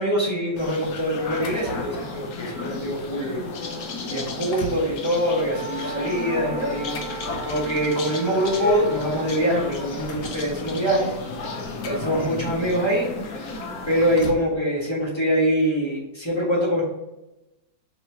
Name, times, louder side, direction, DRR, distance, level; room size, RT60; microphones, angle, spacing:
voice 1, 0.0-3.5 4.1-11.1 11.8-13.1 13.9-16.8, equal, 30° left, -5 dB, 0.5 m, -24 dB
sound 1, 0.6-14.3, left 3 dB, 65° left, 0.9 m, -32 dB
sound 2, 1.2-2.2 2.8-3.0 3.6-3.7 4.1-4.9 6.6-7.9 9.0-9.1 9.4-10.5 11.3-12.7 13.7-14.5, left 1 dB, 80° left, 1.4 m, -39 dB
Wind instrument woodwind instrument, 5.4-9.6, right 6 dB, 40° right, 1.0 m, -36 dB
3.2 x 3.0 x 4.4 m, 0.96 s
omnidirectional pair, 2.2 m